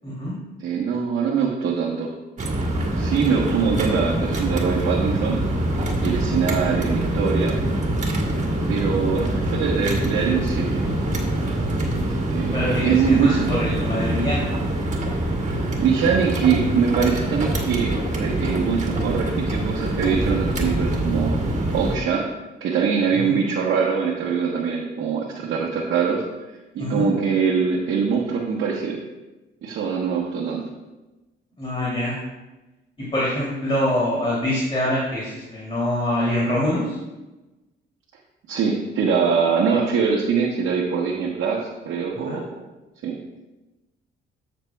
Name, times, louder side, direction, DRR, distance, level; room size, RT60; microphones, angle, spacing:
voice 1, 0.0-0.3 6.0-6.2 12.5-14.5 23.1-23.4 26.8-27.1 31.6-32.2 33.0-37.0 42.2-42.4, left 1 dB, 30° left, -7 dB, 2.8 m, -25 dB
voice 2, 0.6-2.1 3.0-5.4 5.8-7.5 8.7-10.8 12.3-13.5 15.5-21.4 21.7-22.2 22.6-26.2 26.7-29.0 29.6-30.6 38.5-42.4 43.0-43.1, right 6 dB, 80° right, -5 dB, 1.2 m, -23 dB
sound 1, 2.4-22.0, right 1 dB, 35° right, 1.9 m, -24 dB
13.0 x 6.6 x 2.3 m, 1.1 s
cardioid pair, 90°, 20 cm